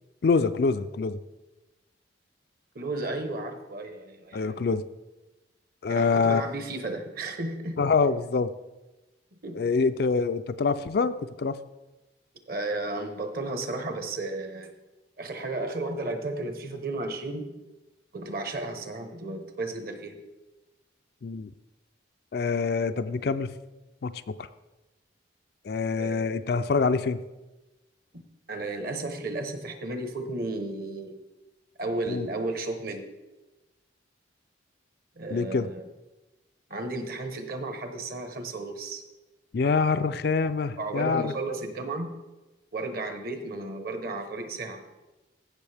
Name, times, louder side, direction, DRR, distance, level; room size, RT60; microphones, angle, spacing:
voice 1, 0.2-1.2 4.3-4.8 5.8-6.4 7.8-8.5 9.5-11.6 21.2-21.5 22.3-23.5 24.0-24.5 25.6-27.2 32.1-32.3 35.3-35.7 39.5-41.3, left 4 dB, 55° left, 11 dB, 0.4 m, -25 dB
voice 2, 2.7-4.6 5.9-7.8 9.4-9.6 12.5-14.7 15.2-17.6 18.1-20.2 26.0-26.3 28.1-28.2 28.5-31.2 31.8-33.1 35.2-35.9 36.7-39.0 40.8-42.1 42.7-44.8, right 2 dB, 50° right, 6 dB, 1.0 m, -33 dB
15.5 x 6.3 x 3.4 m, 1.1 s
head